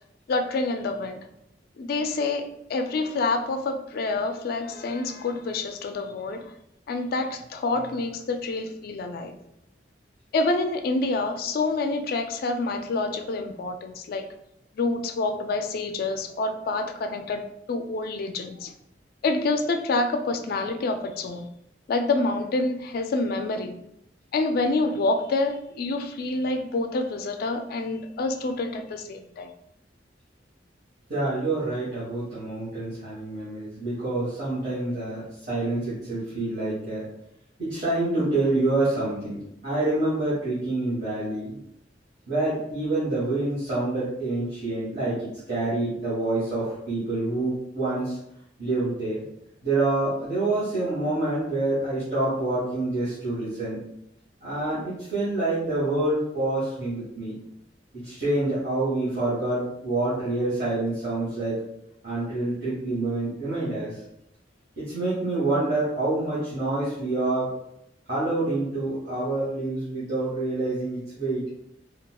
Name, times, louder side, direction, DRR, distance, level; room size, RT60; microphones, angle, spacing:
voice 1, 0.3-1.2 1.8-6.5 6.9-9.4 10.3-14.3 14.8-18.7 19.2-21.5 21.9-23.8 24.3-29.5, left 3 dB, 55° left, 7 dB, 0.3 m, -27 dB
voice 2, 31.1-37.0 37.6-41.6 42.3-48.2 48.6-49.2 49.6-53.8 54.4-57.3 57.9-61.6 62.0-64.0 64.8-67.5 68.1-71.5, right 2 dB, 50° right, -12 dB, 1.4 m, -27 dB
4.0 x 2.3 x 2.2 m, 0.80 s
head